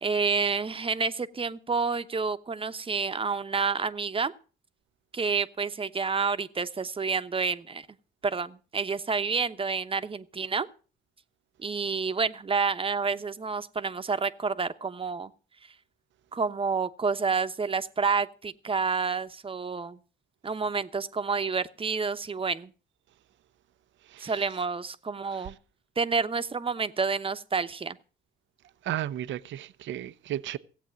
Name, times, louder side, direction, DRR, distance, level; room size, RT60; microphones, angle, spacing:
voice 1, 0.0-4.3 5.1-7.9 8.2-10.7 11.6-15.3 16.3-20.0 20.4-22.7 24.2-25.6 26.0-28.0, right 5 dB, 25° right, 1.0 m, -29 dB
voice 2, 28.9-30.6, right 12 dB, 70° right, 0.7 m, -33 dB
16.0 x 8.4 x 6.2 m
cardioid pair, 90°, 20 cm